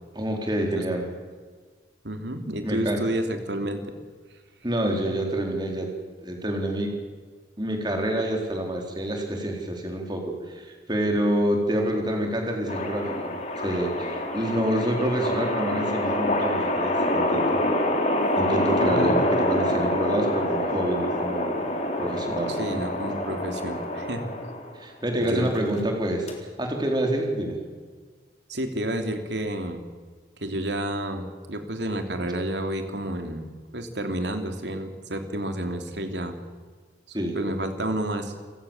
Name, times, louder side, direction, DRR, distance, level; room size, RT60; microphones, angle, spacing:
voice 1, 0.1-1.1 2.6-3.0 4.6-5.9 6.2-6.9 7.6-17.6 18.4-21.6 22.0-22.5 24.8-26.3 26.6-27.6 37.1-37.4, right 1 dB, 25° right, 2 dB, 4.2 m, -27 dB
voice 2, 2.0-3.8 18.8-19.1 22.5-24.3 25.2-25.5 28.5-29.8 30.4-36.4 37.1-38.4, right 1 dB, 80° right, 6 dB, 3.1 m, -30 dB
sound 1, 12.7-24.8 25.6-25.8 26.3-26.4, left 1 dB, 40° left, 3.8 m, -26 dB
29.5 x 17.5 x 7.3 m, 1.5 s
head